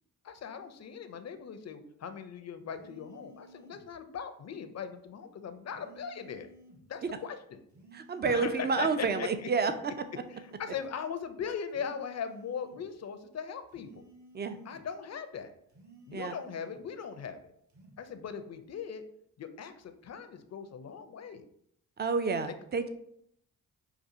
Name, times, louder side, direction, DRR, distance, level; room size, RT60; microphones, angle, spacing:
voice 1, 0.2-6.5 6.9-7.6 8.2-9.3 10.3-14.1 14.6-15.5 16.1-17.5 18.0-19.0 19.4-21.5, left 7 dB, 40° left, 9 dB, 0.5 m, -39 dB
sound 1, 2.7-3.9 5.7-6.9 7.7-8.9 9.7-10.9 11.7-12.9 13.7-14.9 15.7-16.9 17.7-18.0, right 2 dB, 40° right, 1.0 m, -56 dB
voice 2, 7.9-9.9 14.3-14.6 16.1-16.3 22.0-22.9, right 4 dB, 25° right, 10 dB, 0.4 m, -29 dB
5.0 x 2.4 x 2.7 m, 0.71 s
supercardioid pair, 55°, 41 cm